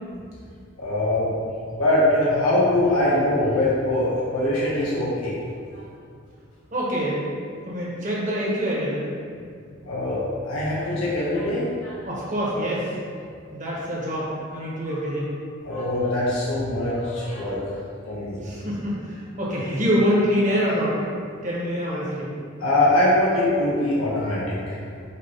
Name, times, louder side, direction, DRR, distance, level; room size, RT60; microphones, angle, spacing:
voice 1, 0.8-1.3 1.8-5.4 5.7-5.8 9.8-12.0 15.6-17.6 18.1-18.4 22.6-24.6, left 1 dB, 90° left, -7 dB, 1.1 m, -22 dB
voice 2, 6.7-7.2 7.6-9.1 12.0-12.9 13.5-15.3 18.4-21.0 21.4-22.3, equal, 35° right, -6 dB, 1.4 m, -25 dB
5.6 x 3.1 x 5.6 m, 2.2 s
head